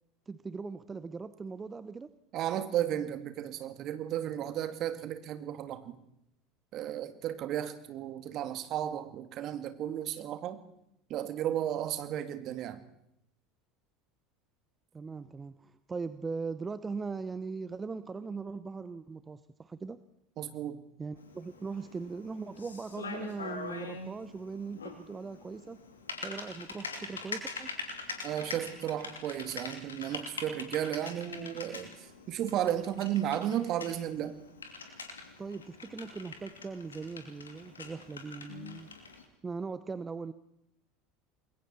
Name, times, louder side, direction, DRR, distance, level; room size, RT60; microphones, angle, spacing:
voice 1, 0.3-2.1 14.9-20.0 21.0-25.8 26.2-27.7 35.4-38.9 39.4-40.3, right 4 dB, 20° right, 13 dB, 1.0 m, -40 dB
voice 2, 2.3-5.9 6.7-10.6 11.1-12.8 20.4-20.8 28.2-34.4, right 11 dB, 50° right, 9 dB, 2.1 m, -34 dB
Typing, 21.2-39.2, left 4 dB, 85° left, 2.9 m, -44 dB
28.5 x 21.5 x 4.4 m, 0.79 s
figure-of-eight pair, 75°, 0 cm